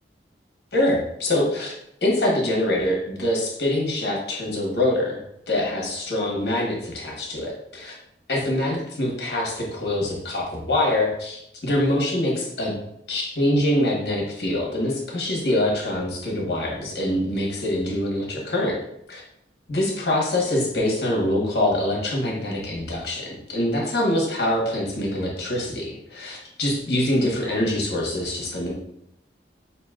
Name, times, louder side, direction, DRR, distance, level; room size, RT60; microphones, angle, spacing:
voice 1, 0.7-1.7 2.0-7.9 8.3-12.7 13.1-18.8 19.1-19.2 19.7-28.7, left 1 dB, 65° left, -2 dB, 1.2 m, -24 dB
5.9 x 2.8 x 2.4 m, 0.77 s
head